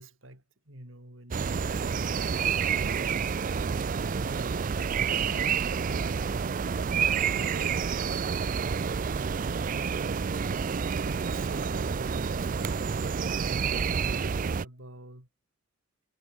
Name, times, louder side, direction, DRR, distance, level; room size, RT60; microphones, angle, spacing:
voice 1, 0.0-3.4 4.0-4.7 5.3-6.8 7.5-10.3 11.0-13.0 13.6-15.3, right 1 dB, 85° right, 6.6 m, -48 dB
sound 1, 1.3-14.7, right 6 dB, 45° right, 0.4 m, -29 dB
head